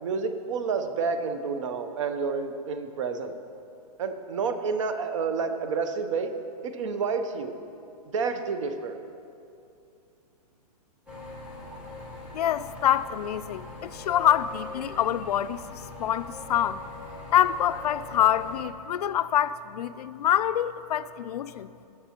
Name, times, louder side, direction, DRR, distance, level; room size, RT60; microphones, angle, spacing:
voice 1, 0.0-3.3 4.0-6.3 6.6-7.5 8.0-9.0, right 5 dB, 50° right, 0.8 m, -29 dB
sound 1, 11.1-18.6, left 2 dB, 5° right, 1.1 m, -42 dB
voice 2, 12.3-16.8 17.3-21.7, left 10 dB, 75° left, 0.4 m, -26 dB
19.0 x 6.8 x 2.9 m
hypercardioid pair, 170°, 20 cm